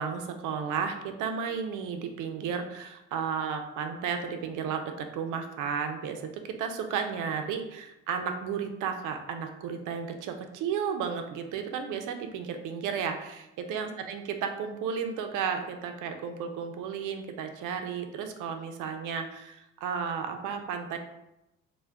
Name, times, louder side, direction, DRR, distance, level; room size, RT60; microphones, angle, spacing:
voice 1, 0.0-21.0, right 6 dB, 75° right, 6 dB, 0.5 m, -33 dB
2.2 x 2.1 x 3.5 m, 0.89 s
supercardioid pair, 75°, 31 cm